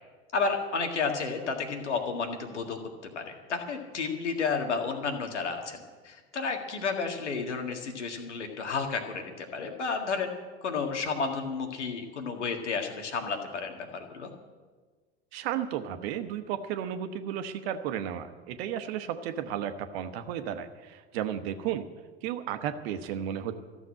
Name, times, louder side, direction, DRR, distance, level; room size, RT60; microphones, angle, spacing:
voice 1, 0.3-2.8 3.2-10.4 10.6-14.3, left 4 dB, 85° left, 4 dB, 1.9 m, -32 dB
voice 2, 15.3-21.8 22.2-23.5, right 9 dB, 60° right, 9 dB, 1.2 m, -33 dB
14.0 x 7.2 x 9.8 m, 1.4 s
hypercardioid pair, 80°, 34 cm